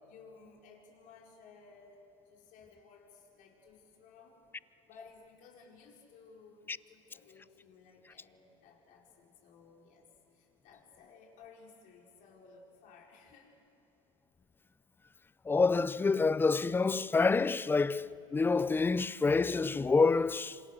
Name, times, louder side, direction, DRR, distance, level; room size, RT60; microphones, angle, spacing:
voice 1, 0.0-4.4 4.8-13.6, left 5 dB, 50° left, 5.0 m, -58 dB
voice 2, 15.4-20.6, left 4 dB, 10° left, 0.5 m, -27 dB
27.5 x 26.0 x 6.7 m
hypercardioid pair, 95°, 17 cm